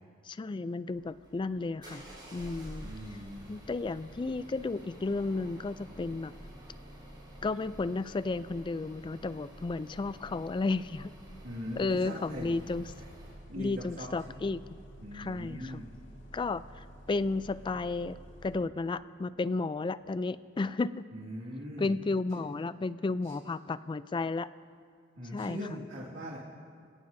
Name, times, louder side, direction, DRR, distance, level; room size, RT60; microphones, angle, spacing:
voice 1, 0.3-2.9 3.5-6.3 7.4-11.1 11.8-12.9 13.6-14.6 15.1-15.8 16.3-18.2 18.4-21.1 21.8-24.5 25.3-25.6, left 3 dB, 25° left, 15 dB, 0.3 m, -33 dB
sound 1, 0.9-13.4, equal, 25° right, 5.0 m, -50 dB
voice 2, 2.8-3.4 11.4-12.5 13.5-14.4 15.0-15.9 21.1-21.9 23.2-23.4 25.2-26.4, equal, 75° right, -5 dB, 2.1 m, -41 dB
Bus, 12.4-18.6, equal, 65° left, 2.1 m, -51 dB
25.5 x 17.0 x 2.7 m, 2.2 s
head